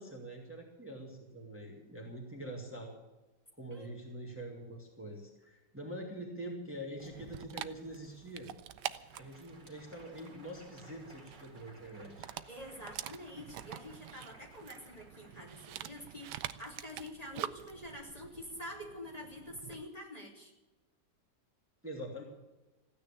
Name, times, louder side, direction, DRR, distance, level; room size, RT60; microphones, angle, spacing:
voice 1, 0.0-3.0 3.6-8.5 9.1-12.3 21.8-22.2, right 1 dB, 5° right, -1 dB, 2.4 m, -45 dB
Dog, 7.0-19.9, right 11 dB, 80° right, 1.3 m, -47 dB
Crowd, 8.7-17.5, right 2 dB, 25° right, 2.5 m, -60 dB
voice 2, 12.5-20.5, left 1 dB, 20° left, -2 dB, 3.3 m, -47 dB
16.0 x 9.6 x 8.7 m, 1.1 s
omnidirectional pair, 1.8 m